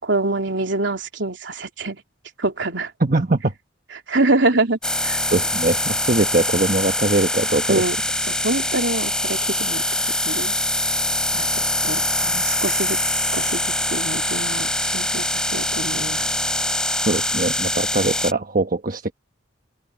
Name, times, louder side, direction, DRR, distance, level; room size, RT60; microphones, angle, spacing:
voice 1, 0.0-2.0 2.4-2.9 4.1-5.2 7.7-8.0 8.3-10.6 11.3-16.3, right 2 dB, 65° right, 3.6 m, -25 dB
voice 2, 3.0-3.5 5.3-7.8 17.0-19.1, right 2 dB, 45° right, 1.3 m, -21 dB
sound 1, 4.8-18.3, left 1 dB, 5° left, 3.8 m, -23 dB
open air
head